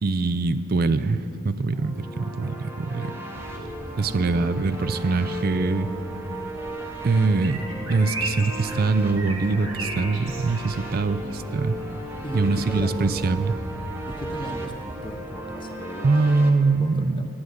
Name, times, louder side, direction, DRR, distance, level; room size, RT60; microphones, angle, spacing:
voice 1, 0.0-3.1 4.0-5.9 7.0-7.6 7.9-11.8 12.3-13.5 16.0-17.3, right 3 dB, 45° right, 13 dB, 0.4 m, -23 dB
sound 1, 1.7-16.5, right 1 dB, 10° right, 0.8 m, -36 dB
sound 2, 3.3-15.3, right 2 dB, 65° right, 1.8 m, -38 dB
voice 2, 12.2-13.1 14.1-17.3, left 1 dB, 20° left, 6 dB, 0.6 m, -37 dB
9.1 x 8.7 x 9.6 m, 2.9 s
head